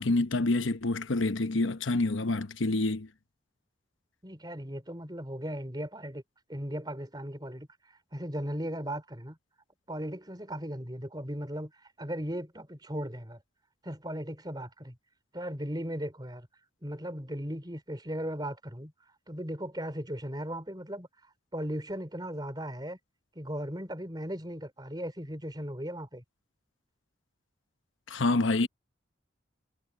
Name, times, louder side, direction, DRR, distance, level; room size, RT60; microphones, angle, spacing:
voice 1, 0.0-3.1 28.1-28.7, left 2 dB, 80° left, 1.0 m, -27 dB
voice 2, 4.2-6.2 6.5-9.4 9.9-13.4 13.8-15.0 15.3-16.5 16.8-18.9 19.3-23.0 23.3-26.2, equal, 20° right, 4.2 m, -37 dB
head